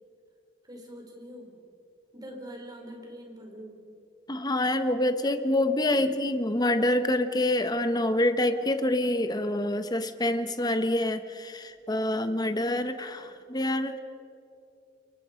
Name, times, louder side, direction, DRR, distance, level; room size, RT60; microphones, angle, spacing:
voice 1, 0.7-1.6 2.1-3.8 5.9-6.1, equal, 25° right, 1 dB, 4.4 m, -44 dB
voice 2, 4.3-14.0, left 1 dB, 25° left, 9 dB, 1.2 m, -26 dB
29.0 x 23.5 x 5.3 m, 2.6 s
head